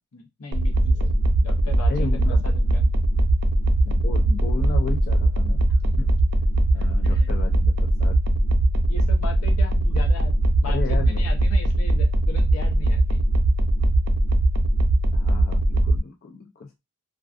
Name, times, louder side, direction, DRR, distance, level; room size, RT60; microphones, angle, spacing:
voice 1, 0.1-2.2 2.4-2.9 5.8-6.0 7.0-7.3 8.9-13.2, left 3 dB, 70° left, 3 dB, 0.7 m, -38 dB
sound 1, 0.5-16.0, right 1 dB, 85° right, 0.4 m, -20 dB
voice 2, 1.9-2.5 3.8-5.6 6.0-6.1 6.7-8.2 10.6-11.2 15.1-16.7, left 4 dB, 40° left, 3 dB, 0.3 m, -34 dB
2.4 x 2.4 x 2.3 m, 0.23 s
head